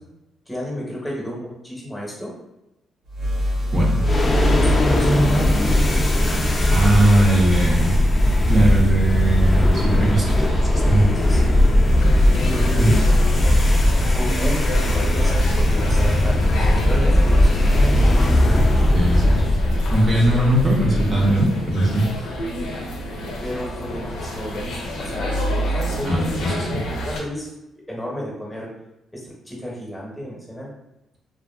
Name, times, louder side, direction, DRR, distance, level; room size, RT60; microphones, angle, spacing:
voice 1, 0.5-2.3 4.2-5.8 11.1-11.5 12.4-13.6 14.1-17.5 23.4-25.3 25.6-27.5 27.9-28.7 29.1-30.7, equal, 10° left, -3 dB, 0.9 m, -32 dB
sound 1, 3.1-5.5, left 1 dB, 70° right, 0.9 m, -23 dB
voice 2, 3.7-4.0 6.7-7.9 8.5-11.1 12.8-12.9 18.9-19.4 19.9-22.1 26.0-26.8, right 1 dB, 40° right, -4 dB, 0.6 m, -19 dB
sound 2, 4.0-21.4, left 1 dB, 30° left, 0.4 m, -18 dB
sound 3, 12.0-27.2, equal, 90° left, 0.6 m, -30 dB
2.5 x 2.5 x 2.3 m, 0.91 s
cardioid pair, 90°, 0 cm